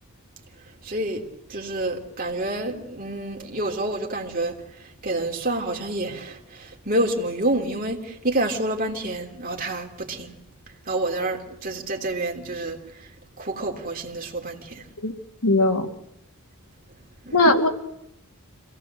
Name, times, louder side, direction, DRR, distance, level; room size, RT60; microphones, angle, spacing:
voice 1, 0.8-10.3 10.8-13.1 13.4-14.9 17.2-17.5, right 1 dB, 40° right, 3.4 m, -28 dB
voice 2, 15.4-15.9 17.3-17.7, left 2 dB, 85° left, 2.7 m, -18 dB
26.5 x 18.0 x 7.9 m
head